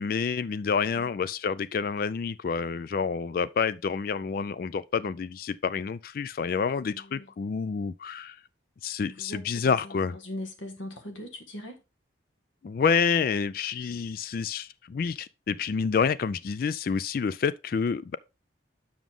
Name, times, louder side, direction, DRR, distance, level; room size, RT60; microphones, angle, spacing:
voice 1, 0.0-8.4 8.8-10.2 12.6-18.2, left 6 dB, 50° left, 0.3 m, -28 dB
voice 2, 6.8-7.3 9.0-11.8, left 1 dB, 85° left, 1.7 m, -41 dB
7.2 x 6.1 x 3.6 m
head